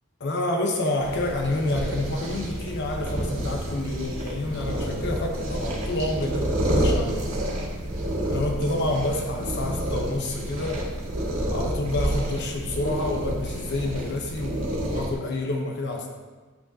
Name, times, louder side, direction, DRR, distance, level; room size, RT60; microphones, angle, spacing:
voice 1, 0.2-7.3 7.9-10.8 11.5-16.1, left 2 dB, 55° left, 1 dB, 0.8 m, -29 dB
sound 1, 1.0-15.1, right 1 dB, 85° right, 1.8 m, -29 dB
9.6 x 6.2 x 2.7 m, 1.3 s
head